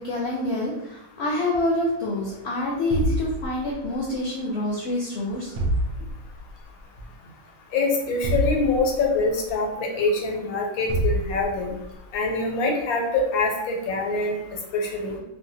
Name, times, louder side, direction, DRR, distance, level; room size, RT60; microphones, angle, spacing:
voice 1, 0.0-5.6, left 1 dB, 65° left, -4 dB, 0.7 m, -27 dB
sound 1, 2.9-4.0 5.6-6.5 8.2-9.3 10.9-11.9, right 1 dB, 75° right, 1.0 m, -27 dB
voice 2, 7.7-11.7 12.1-14.4 14.7-15.2, left 3 dB, 85° left, 0 dB, 1.1 m, -24 dB
2.6 x 2.2 x 2.7 m, 0.88 s
omnidirectional pair, 1.5 m